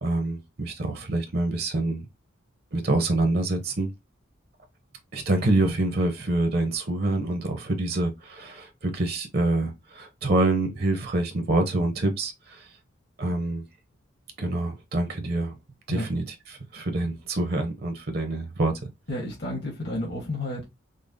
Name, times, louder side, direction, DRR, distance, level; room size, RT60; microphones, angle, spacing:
voice 1, 0.0-2.1 2.7-3.9 5.1-12.7 13.2-13.6 14.4-15.6 15.9-18.7, right 2 dB, 50° right, 0.6 m, -26 dB
voice 2, 19.1-20.6, left 1 dB, 55° left, 1.1 m, -31 dB
5.1 x 2.0 x 2.5 m
head